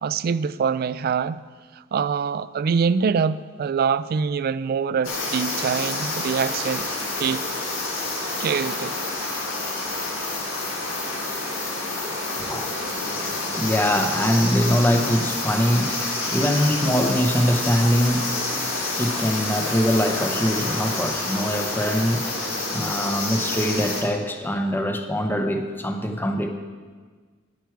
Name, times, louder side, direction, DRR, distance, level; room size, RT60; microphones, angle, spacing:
voice 1, 0.0-1.4 1.9-6.9 7.2-7.4 8.4-8.9, right 6 dB, 50° right, 0.3 m, -24 dB
sound 1, 5.0-24.0, left 2 dB, 75° left, 1.8 m, -28 dB
voice 2, 12.3-22.4 22.7-26.5, equal, 10° left, 0.7 m, -23 dB
10.5 x 9.3 x 4.6 m
head